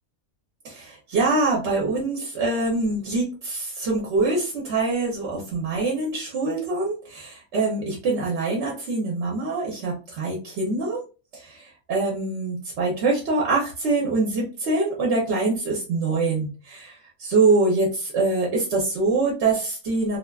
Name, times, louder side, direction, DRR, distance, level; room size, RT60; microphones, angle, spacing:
voice 1, 0.6-11.0 11.3-20.2, right 3 dB, 60° right, -4 dB, 0.9 m, -24 dB
2.4 x 2.3 x 2.2 m, 0.34 s
omnidirectional pair, 1.5 m